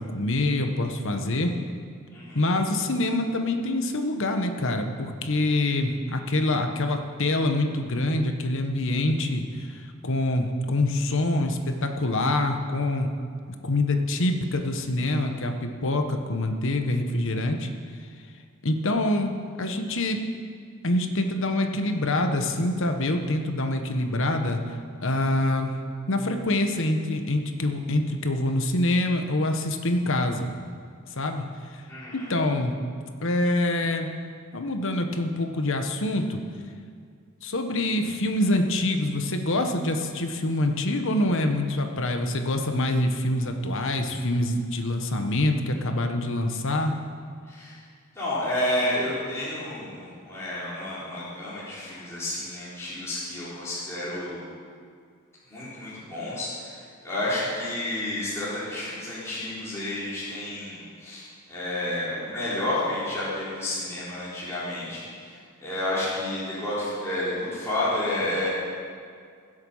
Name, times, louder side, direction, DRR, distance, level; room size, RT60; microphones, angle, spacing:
voice 1, 0.0-1.5 2.3-13.1 13.6-17.7 18.6-20.2 20.8-24.6 25.0-25.8 26.1-30.5 31.1-31.4 31.7-31.8 32.1-32.8 33.2-34.1 34.5-36.4 37.4-46.9, left 1 dB, 60° left, 5 dB, 1.3 m, -25 dB
voice 2, 2.1-2.5 31.9-32.2 47.5-47.8 48.1-54.4 55.5-68.5, left 1 dB, 15° left, -11 dB, 4.0 m, -30 dB
22.0 x 8.1 x 5.6 m, 2.1 s
head